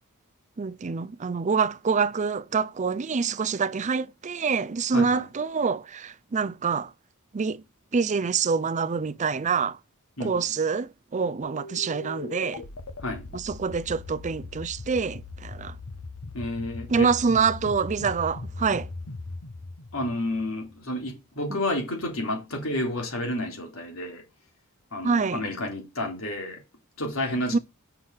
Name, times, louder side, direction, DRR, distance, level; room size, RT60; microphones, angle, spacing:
voice 1, 0.6-6.9 7.3-7.6 7.9-9.8 10.2-12.6 13.3-15.7 16.9-18.9 25.0-25.4 27.5-27.6, right 5 dB, 35° right, 0.5 m, -26 dB
voice 2, 4.9-5.3 10.2-10.5 13.0-13.3 16.3-17.1 19.9-24.2 24.9-26.6 27.0-27.6, left 1 dB, 70° left, 3.4 m, -30 dB
sound 1, 11.4-20.8, left 3 dB, 85° left, 1.0 m, -39 dB
6.5 x 5.9 x 5.9 m
head